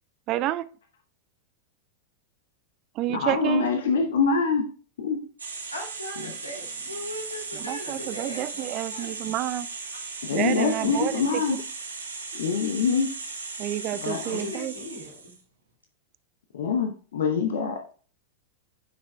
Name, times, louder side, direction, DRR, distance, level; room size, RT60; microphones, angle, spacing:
voice 1, 0.3-0.6 2.9-3.7 7.5-9.7 10.3-11.4 13.6-14.7, right 13 dB, 40° right, 17 dB, 0.3 m, -29 dB
voice 2, 3.1-4.6 5.0-5.2 6.2-6.3 10.2-11.6 12.3-13.1 13.9-14.5 16.5-17.8, left 5 dB, 60° left, 4 dB, 0.9 m, -25 dB
sound 1, 5.4-15.4, right 4 dB, 80° right, 2.7 m, -37 dB
voice 3, 5.7-9.3 14.3-15.4, left 1 dB, 85° left, 0 dB, 2.3 m, -39 dB
9.6 x 6.4 x 2.2 m, 0.40 s
figure-of-eight pair, 90°, 0 cm